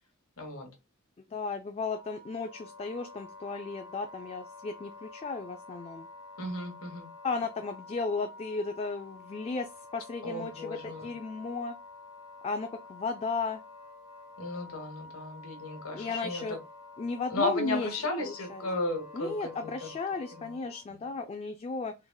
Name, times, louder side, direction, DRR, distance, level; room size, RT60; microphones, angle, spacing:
voice 1, 0.4-0.7 6.4-7.1 10.2-11.1 14.4-16.4 17.3-19.7 20.4-20.6 20.9-21.0, left 2 dB, 80° left, 1.3 m, -34 dB
voice 2, 1.3-6.1 7.2-11.8 12.4-13.6 15.9-16.6 17.0-17.9 18.2-18.6 19.1-21.9, left 4 dB, 30° left, 0.3 m, -35 dB
Wind instrument woodwind instrument, 1.8-20.9, left 3 dB, 5° right, 1.1 m, -49 dB
3.7 x 3.3 x 2.2 m
head